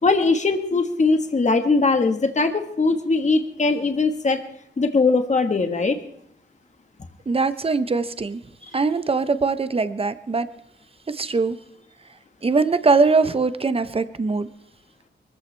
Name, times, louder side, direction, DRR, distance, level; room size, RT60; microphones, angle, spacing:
voice 1, 0.0-4.4 4.8-6.0, left 3 dB, 40° left, 6 dB, 1.5 m, -20 dB
voice 2, 7.3-8.4 8.7-10.5 11.1-11.6 12.4-14.5, right 4 dB, 30° right, 12 dB, 0.8 m, -21 dB
23.5 x 14.5 x 3.4 m, 0.72 s
wide cardioid pair, 110°, 19 cm